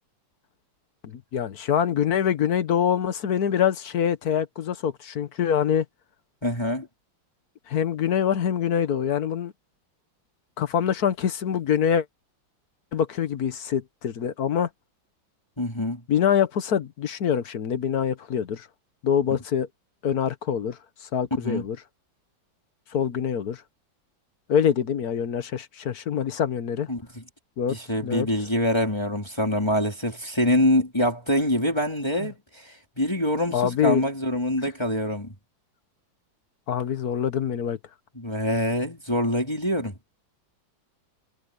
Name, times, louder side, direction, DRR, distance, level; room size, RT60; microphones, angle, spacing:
voice 1, 1.0-5.8 7.7-9.5 10.6-12.0 12.9-14.7 16.1-18.7 19.0-19.7 20.0-20.8 21.1-21.8 22.9-23.6 24.5-26.9 27.6-27.8 28.0-28.3 33.5-34.0 36.7-37.8, left 8 dB, 55° left, 1.5 m, -25 dB
voice 2, 6.4-6.9 15.6-16.0 21.4-21.6 26.9-27.2 27.7-35.3 38.1-39.9, left 1 dB, 15° left, 3.9 m, -25 dB
omnidirectional pair, 2.1 m